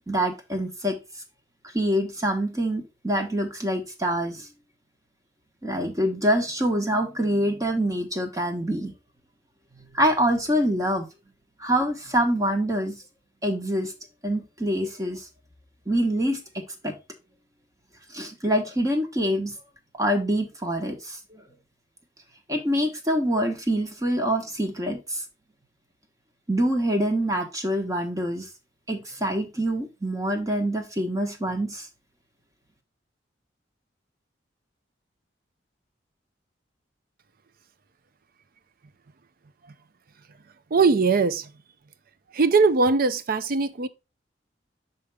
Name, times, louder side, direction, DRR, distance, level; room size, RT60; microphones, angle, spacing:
voice 1, 0.1-1.0 1.7-4.5 5.6-8.9 9.8-11.1 11.6-13.0 13.4-13.9 14.2-15.3 15.9-16.4 16.8-16.9 18.1-19.6 20.0-21.4 22.5-25.2 26.5-28.5 28.9-31.9, equal, 20° right, 1.1 m, -25 dB
voice 2, 40.7-41.5 42.3-43.9, right 4 dB, 50° right, 0.5 m, -20 dB
5.7 x 5.0 x 3.4 m
head